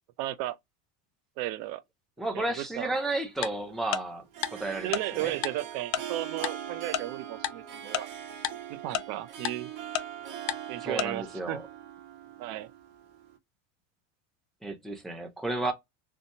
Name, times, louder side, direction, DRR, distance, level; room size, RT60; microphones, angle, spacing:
voice 1, 0.2-0.6 1.4-1.8 2.3-2.9 4.8-8.1 8.7-9.7 10.7-11.6 12.4-12.7, right 14 dB, 60° right, 0.5 m, -34 dB
voice 2, 2.2-5.3 10.8-11.6 14.6-15.7, right 2 dB, ahead, 0.5 m, -33 dB
Harp, 3.0-13.4, right 10 dB, 80° right, 1.0 m, -42 dB
Tick-tock, 3.4-3.5 3.9-4.0 4.4-4.5 4.9-5.0 5.4-5.5 5.9-6.0 6.4-6.5 6.9-7.0 7.4-7.5 7.9-8.0 8.4-8.5 8.9-9.0 9.4-9.5 9.9-10.0 10.5-10.6 11.0-11.1, left 12 dB, 85° left, 0.5 m, -29 dB
2.8 x 2.1 x 2.6 m
supercardioid pair, 130°, 40 cm